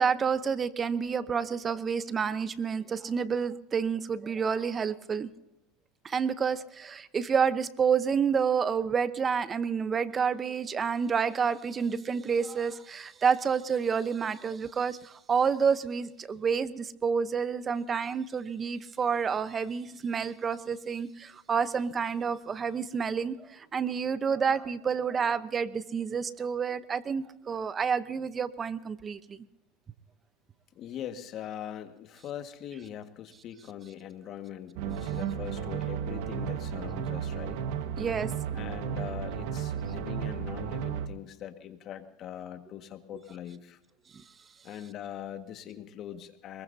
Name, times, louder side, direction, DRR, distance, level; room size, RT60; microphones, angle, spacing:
voice 1, 0.0-5.3 6.0-29.4 38.0-38.3 44.1-44.2, right 6 dB, 25° right, 14 dB, 0.8 m, -29 dB
voice 2, 30.8-37.6 38.5-43.8 44.6-46.6, left 10 dB, 45° left, 7 dB, 1.7 m, -41 dB
sound 1, 34.8-41.1, right 8 dB, 75° right, 1.5 m, -33 dB
23.0 x 21.5 x 2.8 m, 0.85 s
supercardioid pair, 130°, 0 cm